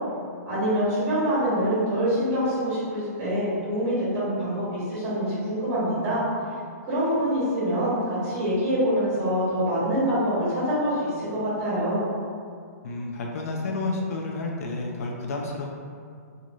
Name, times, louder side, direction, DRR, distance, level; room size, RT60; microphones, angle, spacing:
voice 1, 0.5-6.2 6.8-12.0, equal, 25° right, -10 dB, 1.4 m, -25 dB
voice 2, 12.8-15.8, left 3 dB, 60° left, 0 dB, 0.4 m, -30 dB
3.0 x 2.4 x 2.6 m, 2.2 s
hypercardioid pair, 155°, 9 cm